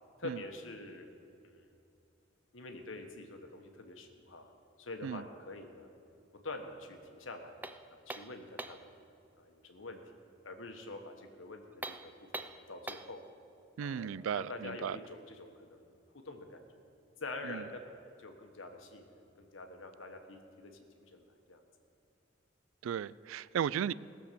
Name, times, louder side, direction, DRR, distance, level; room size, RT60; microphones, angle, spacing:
voice 1, 0.2-1.1 1.4-1.7 2.5-4.5 4.8-5.9 6.4-7.6 7.9-8.9 9.4-10.0 10.4-12.0 12.3-13.2 13.8-16.8 17.2-21.6, left 2 dB, 85° left, 5 dB, 1.4 m, -46 dB
sound 1, 7.6-8.9 11.7-13.2, right 2 dB, 10° right, 0.3 m, -43 dB
voice 2, 13.8-15.0 17.4-17.6 22.8-23.9, right 8 dB, 90° right, 20 dB, 0.3 m, -35 dB
17.5 x 7.1 x 6.9 m, 2.6 s
head